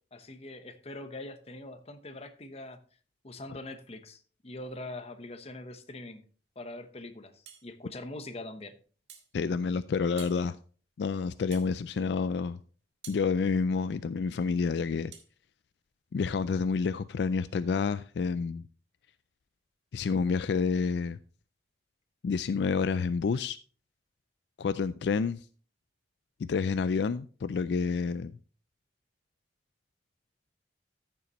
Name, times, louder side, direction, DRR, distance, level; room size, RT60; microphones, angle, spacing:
voice 1, 0.1-2.8 3.2-6.2 6.6-8.7, left 2 dB, 35° left, 1.0 m, -43 dB
sound 1, 7.5-7.7 9.1-9.3 10.2-10.4 11.5-11.7 13.0-13.3 15.1-15.3, right 8 dB, 75° right, 1.9 m, -49 dB
voice 2, 9.3-10.6 11.0-12.6 13.1-15.1 16.1-18.6 19.9-21.2 22.2-23.6 24.6-25.4 26.4-28.3, left 5 dB, 70° left, 0.3 m, -29 dB
14.0 x 6.9 x 3.0 m
head